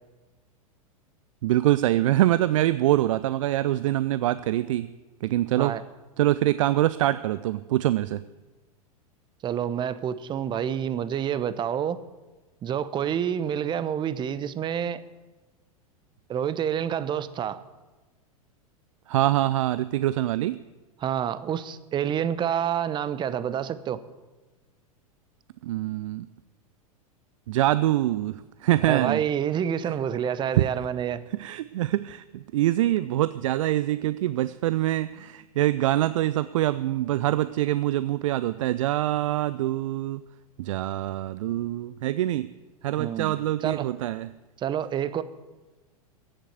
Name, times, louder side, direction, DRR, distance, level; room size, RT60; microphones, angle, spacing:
voice 1, 1.4-4.9 5.2-5.7 6.2-8.2 19.1-20.6 25.6-26.3 27.5-29.2 30.5-30.7 31.3-40.2 40.6-42.5 42.8-44.3, right 14 dB, 60° right, 16 dB, 0.5 m, -24 dB
voice 2, 9.4-12.0 12.6-15.0 16.3-17.6 21.0-24.0 28.8-31.2 43.0-44.0 44.6-45.2, right 9 dB, 25° right, 15 dB, 0.8 m, -28 dB
15.0 x 7.8 x 8.1 m, 1.2 s
figure-of-eight pair, 95°, 19 cm